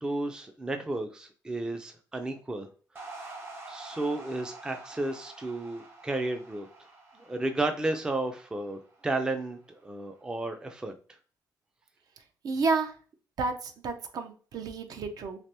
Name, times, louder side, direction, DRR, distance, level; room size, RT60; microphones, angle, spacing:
voice 1, 0.0-2.7 3.7-6.7 7.1-10.9, right 2 dB, 10° right, 6 dB, 0.3 m, -33 dB
sound 1, 3.0-9.4, right 2 dB, 35° right, 0.8 m, -47 dB
voice 2, 12.4-12.9 13.4-15.4, right 4 dB, 60° right, 6 dB, 0.5 m, -31 dB
3.3 x 2.9 x 2.8 m, 0.40 s
wide cardioid pair, 165°, 7 cm